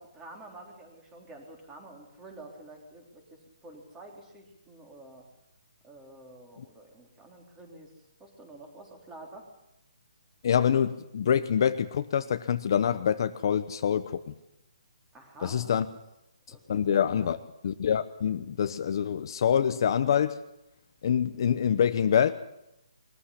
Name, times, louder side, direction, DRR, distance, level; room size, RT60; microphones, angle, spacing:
voice 1, 0.0-5.3 5.8-7.9 8.2-9.5 15.1-15.7 16.5-17.3, right 2 dB, 10° right, 3.6 m, -49 dB
voice 2, 10.4-14.3 15.4-15.9 16.7-17.4 17.6-20.4 21.0-22.3, left 8 dB, 45° left, 0.9 m, -25 dB
22.0 x 14.5 x 9.9 m
hypercardioid pair, 165°, 3 cm